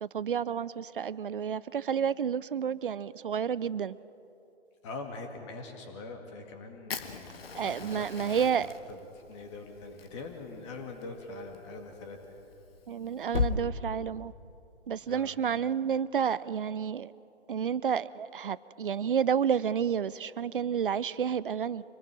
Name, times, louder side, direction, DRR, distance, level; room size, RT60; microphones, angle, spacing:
voice 1, 0.0-4.0 7.5-8.7 12.9-14.3 14.9-17.1 17.5-21.8, right 7 dB, 50° right, 19 dB, 0.5 m, -30 dB
voice 2, 4.8-9.0 9.3-12.2 15.1-15.3, left 3 dB, 25° left, 4 dB, 2.2 m, -43 dB
Fire, 6.9-13.5, left 5 dB, 60° left, 1.6 m, -38 dB
25.5 x 19.5 x 6.2 m, 2.9 s
figure-of-eight pair, 140°, 34 cm